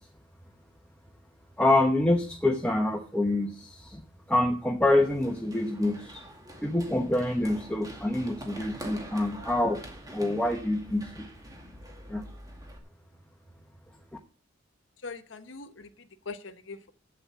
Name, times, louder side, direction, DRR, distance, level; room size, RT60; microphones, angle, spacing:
voice 1, 1.6-4.0 4.3-6.2 6.6-9.8 10.1-11.3 12.1-12.2, left 1 dB, 5° left, 1 dB, 1.0 m, -26 dB
Run, 5.0-12.8, right 1 dB, 20° right, 2.2 m, -45 dB
voice 2, 15.0-16.9, left 4 dB, 70° left, 11 dB, 1.1 m, -42 dB
8.3 x 7.8 x 8.3 m, 0.42 s
head